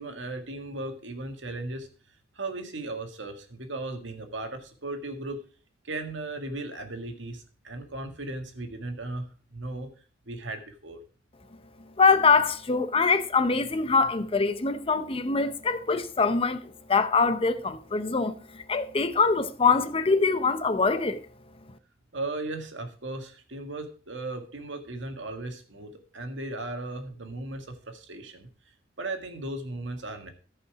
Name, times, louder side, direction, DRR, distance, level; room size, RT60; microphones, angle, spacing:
voice 1, 0.0-1.9 2.3-5.4 5.8-9.9 10.3-11.0 22.1-28.5 29.0-30.3, right 2 dB, 80° right, 1.8 m, -36 dB
voice 2, 12.0-21.2, left 4 dB, 30° left, 0.7 m, -24 dB
13.5 x 5.6 x 4.9 m
head